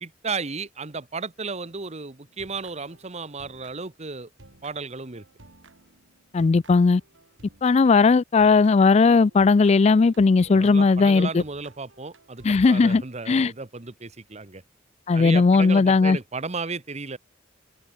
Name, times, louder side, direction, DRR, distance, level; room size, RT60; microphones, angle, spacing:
voice 1, 0.0-4.3 4.6-5.2 10.5-14.6 15.1-17.2, right 4 dB, 35° right, 1.1 m, -34 dB
sound 1, 2.2-4.1 4.4-8.0 8.4-13.0, right 2 dB, 70° right, 2.4 m, -54 dB
voice 2, 6.3-7.0 7.6-11.4 12.4-13.5 15.1-16.2, left 4 dB, 35° left, 0.3 m, -18 dB
head